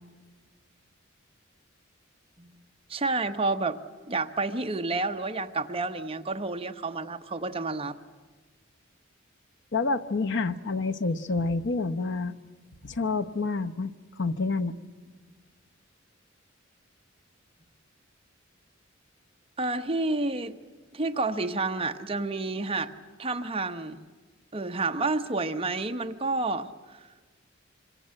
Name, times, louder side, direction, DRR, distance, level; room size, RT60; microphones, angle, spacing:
voice 1, 2.9-3.8 4.1-8.0 14.6-14.7 19.6-20.6 20.9-22.9 23.2-24.0 24.5-27.0, right 3 dB, 30° right, 6 dB, 1.0 m, -30 dB
voice 2, 9.7-12.3 12.8-14.8, left 3 dB, 65° left, 9 dB, 0.9 m, -28 dB
26.5 x 25.5 x 7.7 m, 1.4 s
head